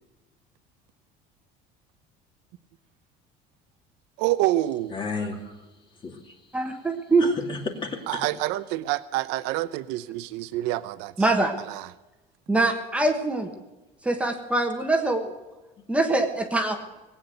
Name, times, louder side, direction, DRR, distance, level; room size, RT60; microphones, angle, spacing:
voice 1, 4.2-5.0 8.1-11.3 11.7-11.9, right 15 dB, 80° right, 0.7 m, -27 dB
voice 2, 4.9-5.7 6.0-6.4 7.2-8.3, left 3 dB, 25° left, 2.5 m, -33 dB
voice 3, 6.5-7.2 11.2-11.5 12.5-13.5 14.0-15.3 15.9-16.8, right 2 dB, 5° right, 1.3 m, -23 dB
19.5 x 8.8 x 7.8 m
cardioid pair, 155°, 18 cm